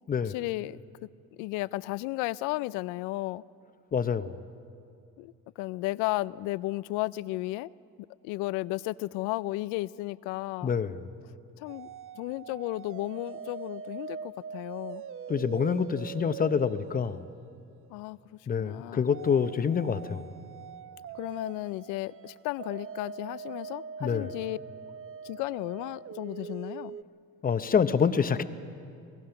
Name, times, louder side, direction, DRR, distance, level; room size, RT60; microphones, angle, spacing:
voice 1, 0.2-0.8 1.3-3.4 5.2-7.7 8.2-10.7 11.6-11.9 12.1-15.0 17.9-19.1 21.1-24.6 25.2-27.0, left 19 dB, 85° left, 0.5 m, -34 dB
voice 2, 3.9-4.4 10.6-11.1 15.3-17.3 18.5-20.3 24.0-24.3 27.4-28.4, left 6 dB, 30° left, 0.9 m, -27 dB
sound 1, 11.7-17.9 19.1-27.0, right 7 dB, 45° right, 0.6 m, -43 dB
28.0 x 18.0 x 5.8 m
cardioid pair, 100°, 31 cm